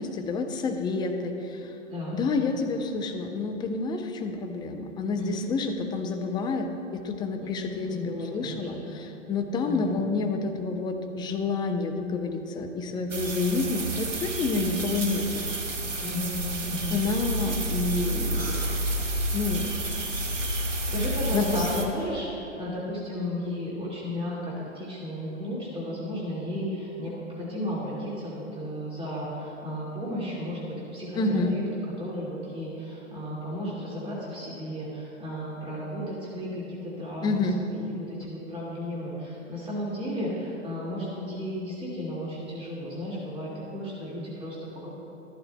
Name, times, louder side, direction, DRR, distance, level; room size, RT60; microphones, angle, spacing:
voice 1, 0.0-1.8 2.1-15.4 16.9-18.6 19.3-19.8 21.3-22.0 31.2-31.5 37.2-37.6, left 3 dB, 10° left, 4 dB, 0.6 m, -29 dB
voice 2, 1.9-2.6 5.2-5.5 7.4-9.1 9.6-10.4 16.0-17.0 20.6-44.9, equal, 15° right, -6 dB, 2.0 m, -34 dB
sound 1, 13.1-21.9, right 1 dB, 90° right, 1.6 m, -30 dB
14.0 x 11.0 x 2.2 m, 2.8 s
hypercardioid pair, 115°, 37 cm